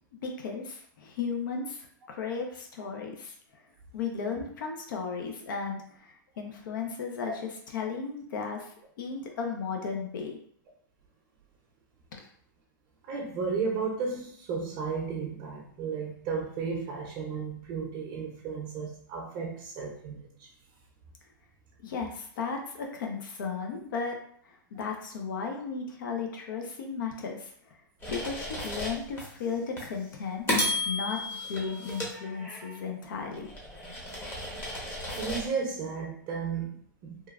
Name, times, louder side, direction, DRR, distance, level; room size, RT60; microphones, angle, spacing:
voice 1, 0.2-3.3 3.9-7.3 7.7-8.7 9.0-10.4 21.8-24.1 24.7-27.5 28.1-30.5 30.8-33.5, left 5 dB, 70° left, 2 dB, 0.5 m, -35 dB
voice 2, 13.1-20.5 35.2-37.3, right 5 dB, 40° right, -2 dB, 0.5 m, -34 dB
sound 1, 28.0-29.3 29.8-29.9 30.5-32.8 33.3-35.5, left 1 dB, 20° left, 0.8 m, -33 dB
3.0 x 2.3 x 2.3 m, 0.62 s
hypercardioid pair, 130°, 11 cm